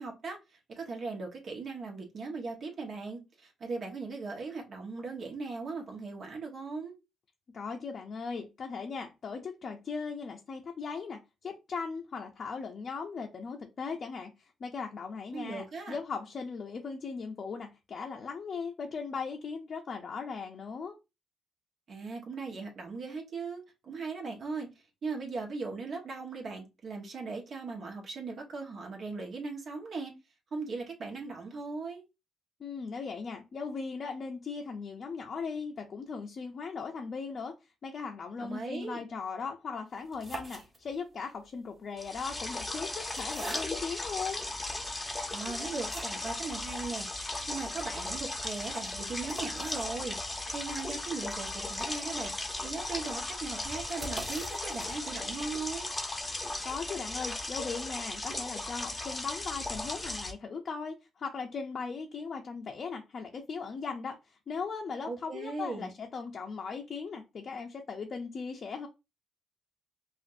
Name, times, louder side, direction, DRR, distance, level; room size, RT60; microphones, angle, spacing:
voice 1, 0.0-6.9 15.3-16.0 21.9-24.7 25.0-30.1 30.5-32.0 38.4-39.0 45.3-50.2 50.5-52.3 52.6-55.9 65.1-65.9, right 4 dB, 55° right, 1.3 m, -38 dB
voice 2, 7.5-21.0 32.6-37.5 37.8-44.4 56.6-68.9, left 5 dB, 50° left, 0.6 m, -38 dB
sound 1, 39.9-41.2 42.0-44.1 44.7-44.8 45.3-46.4 46.7-46.8 47.1-47.2 47.5-55.4, right 2 dB, 25° right, 1.3 m, -46 dB
sound 2, 42.0-60.3, left 2 dB, 15° left, 0.8 m, -37 dB
5.0 x 2.5 x 2.6 m
cardioid pair, 90°, 0 cm